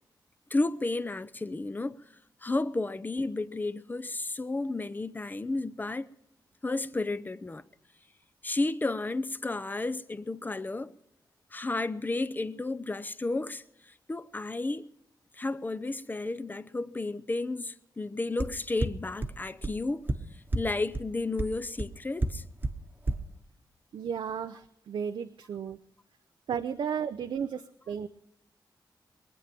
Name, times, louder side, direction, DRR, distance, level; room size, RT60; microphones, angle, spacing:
voice 1, 0.5-2.0 2.4-6.1 6.6-7.6 8.4-10.9 11.5-13.6 14.1-14.9 15.3-20.1 20.5-22.4, left 2 dB, 20° left, 0.6 m, -32 dB
sound 1, 18.4-18.5 18.8-18.9 19.2-19.3 19.6-19.7 20.1-20.2 20.5-20.6 20.9-21.0 21.4-21.5 21.8-21.9 22.2-22.3 22.6-22.7 23.1-23.2, right 2 dB, 25° right, 1.1 m, -27 dB
voice 2, 23.9-25.8 26.5-28.1, right 7 dB, 90° right, 0.6 m, -34 dB
23.0 x 9.1 x 6.0 m
wide cardioid pair, 100°, 8 cm